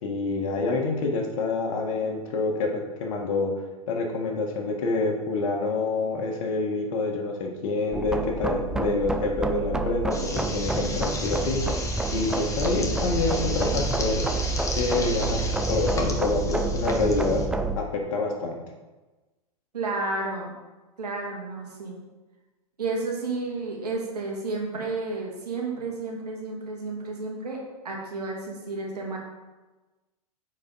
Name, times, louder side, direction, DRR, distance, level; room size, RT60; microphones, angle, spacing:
voice 1, 0.0-3.5 3.9-11.8 12.1-14.2 14.8-17.4 17.8-18.5, left 3 dB, 60° left, 2 dB, 1.5 m, -27 dB
sound 1, 7.9-17.8, right 3 dB, 5° right, 0.4 m, -28 dB
sound 2, 10.1-17.5, left 2 dB, 15° left, 1.2 m, -35 dB
voice 2, 19.7-20.6 21.0-22.0 22.8-29.2, right 3 dB, 80° right, -1 dB, 2.2 m, -31 dB
9.3 x 4.4 x 4.0 m, 1.2 s
hypercardioid pair, 105°, 20 cm